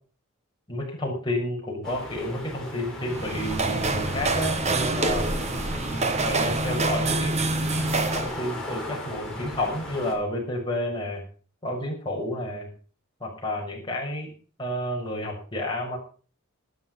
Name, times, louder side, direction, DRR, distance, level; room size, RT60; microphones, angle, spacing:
voice 1, 0.7-5.3 5.9-7.4 7.6-11.2 11.6-12.7 13.2-14.3 14.6-16.0, left 1 dB, 20° left, -1 dB, 6.3 m, -30 dB
sound 1, 1.8-10.1, left 1 dB, 5° left, 5.3 m, -36 dB
sound 2, 3.0-8.4, right 3 dB, 30° right, 1.2 m, -26 dB
13.0 x 13.0 x 5.8 m, 0.39 s
head